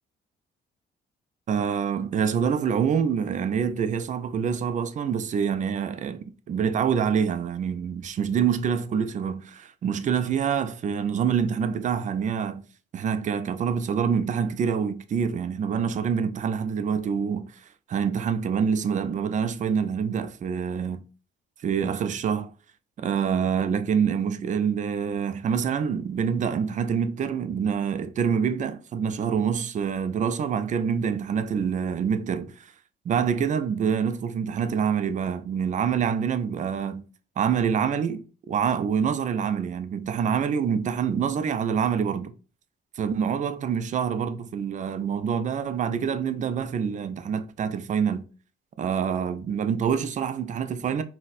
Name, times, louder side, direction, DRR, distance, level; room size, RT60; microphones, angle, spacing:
voice 1, 1.5-12.7 12.9-21.0 21.6-22.5 23.0-32.7 33.1-37.1 37.4-38.2 38.5-42.3 43.0-48.2 48.8-51.0, right 7 dB, 40° right, 0.4 m, -26 dB
3.9 x 2.1 x 2.4 m
cardioid pair, 90°, 20 cm